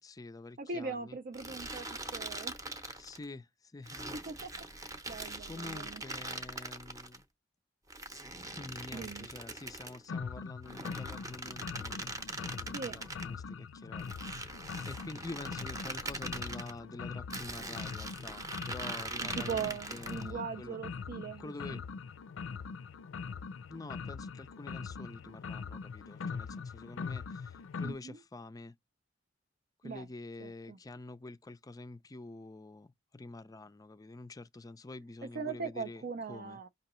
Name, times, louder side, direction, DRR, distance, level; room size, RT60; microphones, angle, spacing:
voice 1, 0.0-1.2 2.9-4.2 5.4-7.2 8.5-20.8 21.4-21.8 23.7-28.7 29.8-36.6, left 2 dB, 20° left, 0.4 m, -47 dB
voice 2, 0.6-2.5 4.1-6.0 8.9-9.3 12.7-13.0 19.2-21.8 27.8-28.2 29.8-30.1 30.4-30.8 35.3-36.7, right 5 dB, 50° right, 0.5 m, -40 dB
sound 1, 1.3-3.2 3.9-7.2 7.9-10.0 10.6-13.3 14.0-16.7 17.3-20.3, right 2 dB, 20° right, 0.8 m, -42 dB
sound 2, 10.1-27.9, left 5 dB, 80° left, 0.4 m, -42 dB
5.6 x 2.9 x 3.0 m
head